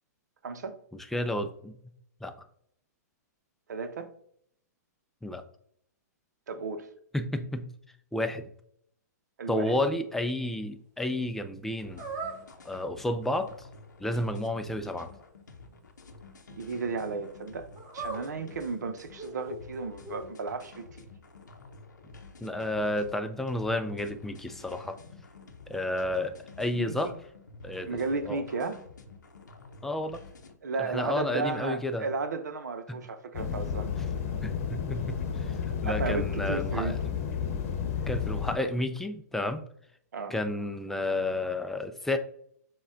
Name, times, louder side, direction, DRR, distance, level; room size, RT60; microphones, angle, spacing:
voice 1, 0.4-0.8 3.7-4.1 6.5-6.9 9.4-9.8 16.5-17.7 17.9-21.1 26.7-27.2 27.8-28.8 30.6-33.9 35.8-37.0 40.1-40.3, right 4 dB, 75° right, 0.7 m, -34 dB
voice 2, 1.1-1.7 2.2-2.3 5.2-5.4 7.1-7.7 8.1-8.5 9.5-12.0 12.6-13.5 14.0-15.1 22.4-25.0 25.7-27.1 27.6-28.0 28.3-28.4 29.8-30.2 30.8-32.1 32.9-33.0 34.4-37.0 38.1-39.6 40.3-42.2, left 1 dB, 5° left, 0.4 m, -31 dB
sound 1, 11.8-30.6, left 3 dB, 85° left, 0.7 m, -50 dB
sound 2, 12.0-12.4 17.7-18.7 19.2-19.6 20.0-20.3, right 3 dB, 35° right, 1.0 m, -38 dB
sound 3, 33.3-38.6, left 7 dB, 50° left, 0.9 m, -31 dB
6.1 x 2.3 x 3.7 m
hypercardioid pair, 125°, 9 cm